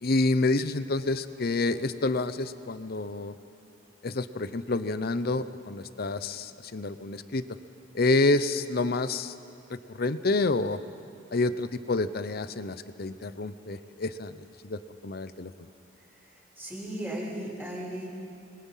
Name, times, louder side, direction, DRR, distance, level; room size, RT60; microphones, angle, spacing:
voice 1, 0.0-3.3 4.0-7.4 7.9-9.3 9.7-10.8 11.3-14.3 14.6-15.5, left 2 dB, 55° left, 13 dB, 0.8 m, -28 dB
voice 2, 15.9-18.1, right 1 dB, 10° right, -5 dB, 6.2 m, -37 dB
25.5 x 22.5 x 5.7 m, 2.4 s
head